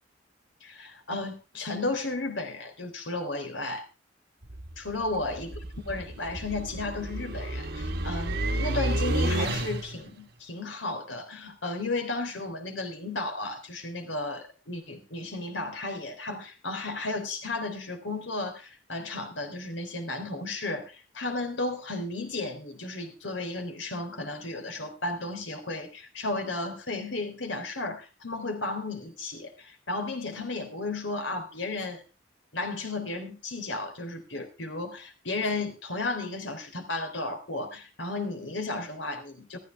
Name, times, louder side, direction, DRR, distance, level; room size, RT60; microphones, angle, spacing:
voice 1, 0.6-3.8 4.8-32.0 32.5-39.6, left 2 dB, 80° left, 5 dB, 3.6 m, -34 dB
sound 1, 4.4-10.1, right 1 dB, 60° right, 1.4 m, -31 dB
15.0 x 14.0 x 3.4 m, 0.30 s
head